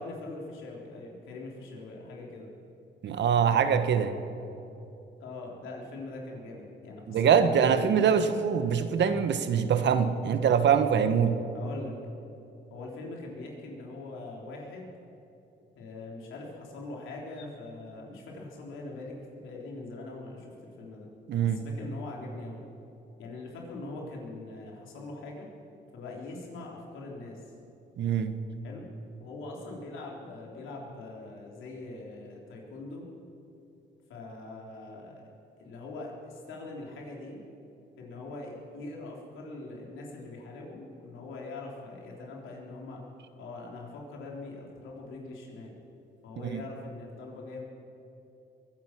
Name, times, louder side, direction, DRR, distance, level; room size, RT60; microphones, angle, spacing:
voice 1, 0.0-2.5 5.2-8.0 11.5-11.9 12.7-14.9 15.8-21.1 21.4-22.6 23.2-25.5 25.9-27.5 28.6-28.9 29.2-33.1 34.1-35.2 35.6-37.4 38.0-43.0 43.4-45.7 46.2-47.6, left 2 dB, 85° left, -1 dB, 3.6 m, -42 dB
voice 2, 3.0-4.2 7.1-11.4 21.3-21.6 28.0-28.3 46.5-46.6, right 7 dB, 65° right, 10 dB, 1.2 m, -24 dB
22.5 x 10.5 x 6.1 m, 2.8 s
cardioid pair, 90°, 20 cm